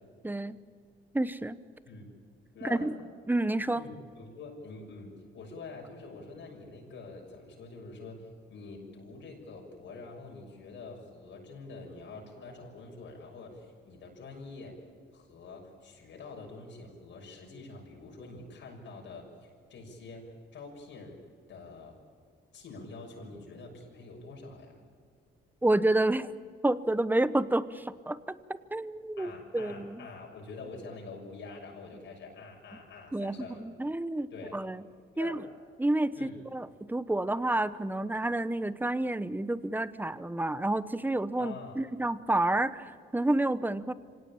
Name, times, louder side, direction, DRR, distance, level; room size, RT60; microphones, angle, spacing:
voice 1, 0.2-0.6 1.1-1.6 2.6-2.9 3.3-3.8 25.6-26.3 26.6-28.2 28.7-30.1 33.1-34.8 35.2-35.4 35.8-43.9, right 2 dB, 10° right, 15 dB, 0.9 m, -29 dB
voice 2, 2.5-2.9 3.7-14.8 15.1-19.3 19.7-21.2 21.5-21.9 22.5-24.8 29.2-33.6 34.3-34.6 35.1-35.4 36.2-36.4 41.4-41.8, left 3 dB, 70° left, 0 dB, 6.6 m, -46 dB
25.5 x 17.5 x 8.8 m, 2.1 s
cardioid pair, 90°, 20 cm